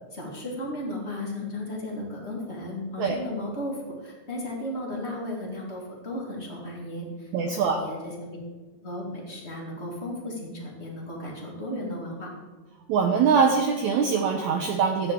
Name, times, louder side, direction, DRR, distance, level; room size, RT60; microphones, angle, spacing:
voice 1, 0.1-8.4 8.8-12.3, left 1 dB, 25° left, -2 dB, 1.5 m, -35 dB
voice 2, 7.3-7.8 12.9-15.1, right 6 dB, 80° right, 3 dB, 1.7 m, -23 dB
14.0 x 9.4 x 3.7 m, 1.3 s
omnidirectional pair, 4.5 m